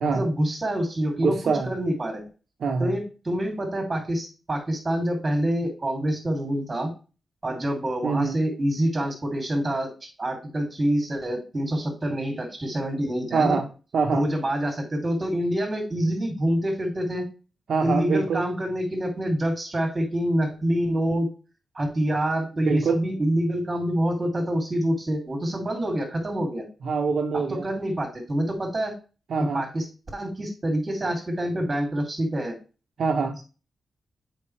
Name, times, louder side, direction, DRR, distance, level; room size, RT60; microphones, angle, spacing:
voice 1, 0.0-2.2 2.8-6.9 7.4-13.6 14.1-17.3 17.8-21.3 21.7-26.6 27.3-28.9 29.5-29.8 30.1-32.5, right 1 dB, 25° right, 1 dB, 2.7 m, -26 dB
voice 2, 1.2-1.7 2.6-2.9 8.0-8.4 13.3-13.7 13.9-14.3 17.7-18.4 22.6-23.0 26.8-27.7 29.3-29.6 33.0-33.4, right 5 dB, 70° right, 3 dB, 0.9 m, -24 dB
8.4 x 5.2 x 3.3 m, 0.34 s
wide cardioid pair, 135°, 0 cm